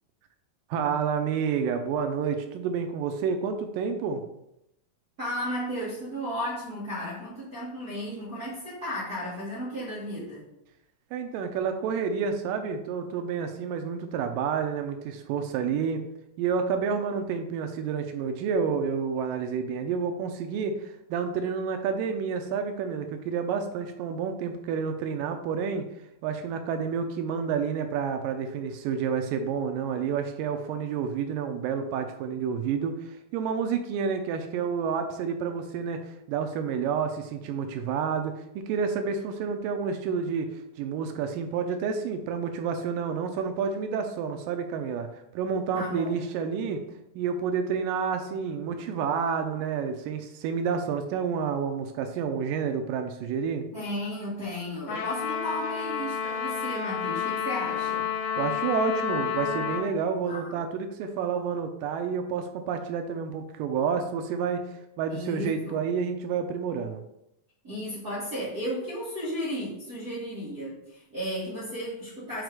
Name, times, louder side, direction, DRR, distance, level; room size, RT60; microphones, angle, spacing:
voice 1, 0.7-4.2 11.1-16.0 16.4-25.9 26.2-46.8 47.2-53.7 58.4-67.0, right 6 dB, 85° right, 6 dB, 2.2 m, -29 dB
voice 2, 5.2-10.5 45.7-46.2 53.7-58.1 60.3-60.5 65.1-65.8 67.6-72.4, equal, 30° right, -11 dB, 2.0 m, -34 dB
Trumpet, 54.9-59.9, left 7 dB, 80° left, 2.7 m, -30 dB
6.5 x 4.3 x 4.8 m, 0.83 s
omnidirectional pair, 3.9 m